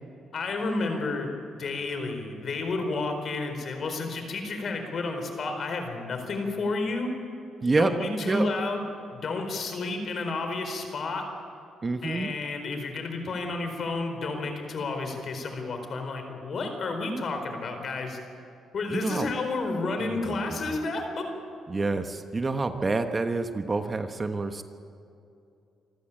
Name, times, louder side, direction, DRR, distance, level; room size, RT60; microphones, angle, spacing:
voice 1, 0.3-1.3 1.6-7.1 7.8-11.2 12.0-18.2 18.7-21.3, left 3 dB, 50° left, 6 dB, 4.5 m, -31 dB
voice 2, 7.6-7.9 8.2-8.5 11.8-12.3 18.9-19.3 20.3-20.8 21.7-24.6, right 3 dB, 30° right, 7 dB, 1.2 m, -28 dB
26.5 x 14.5 x 9.0 m, 2.6 s
cardioid pair, 90°, 0 cm